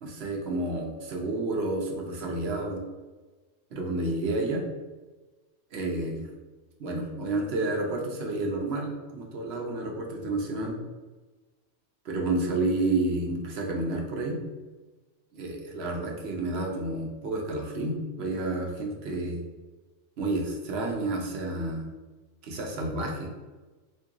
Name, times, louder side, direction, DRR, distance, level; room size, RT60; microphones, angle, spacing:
voice 1, 0.0-2.8 3.7-4.6 5.7-6.3 6.8-10.8 12.0-14.4 15.3-19.4 20.2-21.9 22.4-23.3, right 2 dB, 60° right, 1 dB, 0.8 m, -30 dB
2.8 x 2.6 x 3.6 m, 1.2 s
omnidirectional pair, 1.3 m